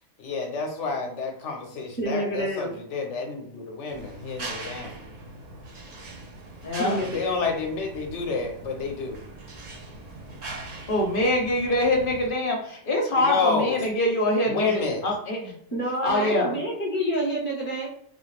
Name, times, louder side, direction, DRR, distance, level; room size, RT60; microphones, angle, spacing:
voice 1, 0.2-5.0 7.1-9.2 13.2-13.9 14.5-15.1, left 4 dB, 80° left, 3 dB, 1.0 m, -29 dB
voice 2, 2.0-2.7 6.8-7.5 15.7-17.9, right 1 dB, 10° left, -3 dB, 0.9 m, -28 dB
sound 1, 3.9-12.3, right 2 dB, 45° right, 0.6 m, -41 dB
voice 3, 6.6-7.0 10.9-15.5 16.0-16.5, left 1 dB, 50° left, 0 dB, 1.0 m, -24 dB
3.9 x 2.4 x 3.2 m, 0.67 s
omnidirectional pair, 1.2 m